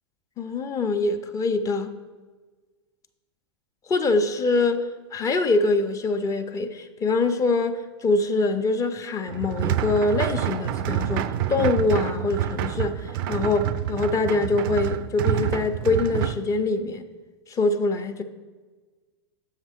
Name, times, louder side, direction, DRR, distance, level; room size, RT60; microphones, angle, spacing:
voice 1, 0.4-1.9 3.9-17.1 17.5-18.2, left 3 dB, 20° left, 0.5 m, -24 dB
sound 1, 9.3-16.4, right 11 dB, 50° right, 0.4 m, -27 dB
7.2 x 6.4 x 3.5 m
hypercardioid pair, 100°, 15 cm